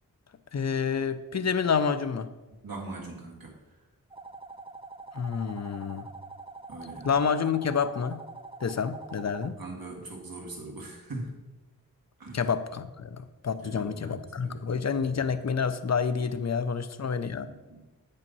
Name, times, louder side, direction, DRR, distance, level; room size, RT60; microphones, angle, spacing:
voice 1, 0.5-2.3 5.1-6.1 7.0-8.2 8.6-9.6 12.3-17.5, left 6 dB, 50° left, 12 dB, 0.6 m, -28 dB
voice 2, 2.6-3.5 6.7-7.1 9.6-11.4 12.2-12.4 13.6-14.6 17.5-17.8, right 2 dB, 80° right, -2 dB, 2.0 m, -41 dB
sound 1, 4.1-9.5, right 3 dB, 15° right, 0.3 m, -45 dB
8.3 x 5.4 x 5.5 m, 1.1 s
wide cardioid pair, 90°, 35 cm